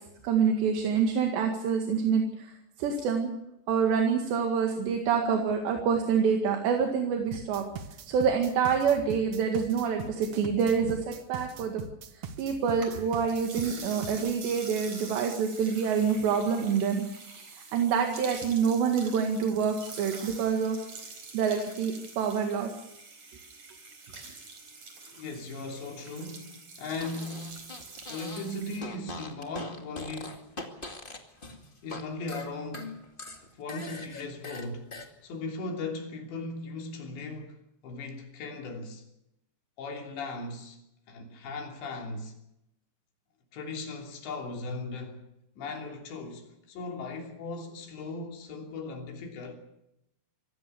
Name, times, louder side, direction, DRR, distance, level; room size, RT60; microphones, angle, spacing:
voice 1, 0.2-2.5 2.8-3.3 3.7-7.6 8.1-11.8 12.1-17.0 17.4-20.8 21.3-22.7, right 6 dB, 75° right, 4.1 m, -27 dB
sound 1, 7.3-14.4, right 6 dB, 60° right, 2.1 m, -41 dB
sound 2, 12.6-28.8, right 4 dB, 40° right, 5.1 m, -46 dB
voice 2, 25.1-27.7 28.1-30.5 31.8-33.0 33.6-34.9 35.2-39.1 39.8-40.8 41.1-42.4 43.5-45.3 45.6-49.5, left 3 dB, 80° left, 5.4 m, -38 dB
Fart, 26.9-28.5 28.8-32.0 32.3-35.1, left 2 dB, 25° left, 1.1 m, -41 dB
25.0 x 17.5 x 6.9 m
omnidirectional pair, 5.0 m